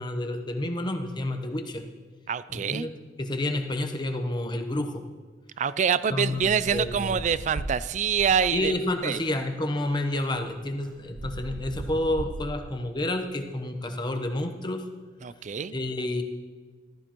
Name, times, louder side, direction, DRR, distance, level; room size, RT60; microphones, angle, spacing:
voice 1, 0.0-1.8 2.5-2.9 3.2-5.1 6.1-7.2 8.5-14.8 15.7-16.2, left 1 dB, 25° left, 5 dB, 0.9 m, -29 dB
voice 2, 2.3-2.9 5.6-8.7 9.0-9.2 15.2-15.7, right 7 dB, 40° right, 16 dB, 0.3 m, -25 dB
sound 1, 6.3-8.9 9.9-10.0 10.3-12.9, right 2 dB, 80° right, 0.7 m, -38 dB
14.5 x 14.0 x 3.0 m, 1.5 s
head